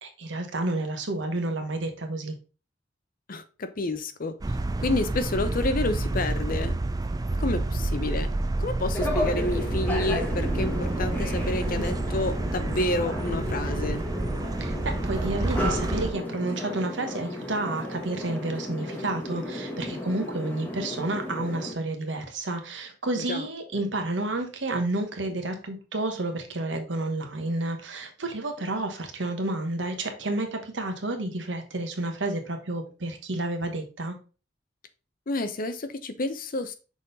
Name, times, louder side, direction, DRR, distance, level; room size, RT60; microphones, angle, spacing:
voice 1, 0.0-2.3 14.6-34.2, right 2 dB, 85° right, 5 dB, 1.3 m, -30 dB
voice 2, 3.3-6.8 7.4-8.3 8.6-14.0 23.3-23.5 35.3-36.7, left 2 dB, 50° left, 10 dB, 0.7 m, -29 dB
sound 1, 4.4-16.1, right 2 dB, 20° right, 0.4 m, -29 dB
sound 2, 8.9-21.7, left 1 dB, 10° left, 1.3 m, -34 dB
6.1 x 3.9 x 4.0 m, 0.34 s
head